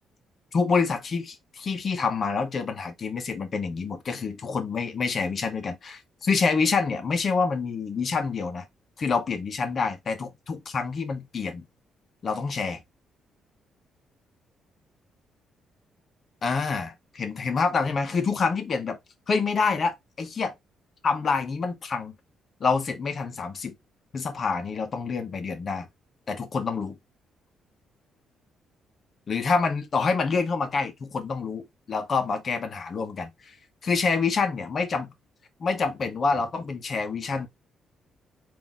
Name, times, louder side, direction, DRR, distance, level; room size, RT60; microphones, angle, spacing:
voice 1, 0.5-8.6 9.0-11.6 12.2-12.8 16.4-19.0 19.3-20.5 21.0-22.1 22.6-23.7 24.1-25.9 26.3-26.9 29.3-33.5 33.8-35.1 35.6-37.5, left 4 dB, 45° left, 1.0 m, -27 dB
3.9 x 2.8 x 3.6 m
cardioid pair, 90°, 0 cm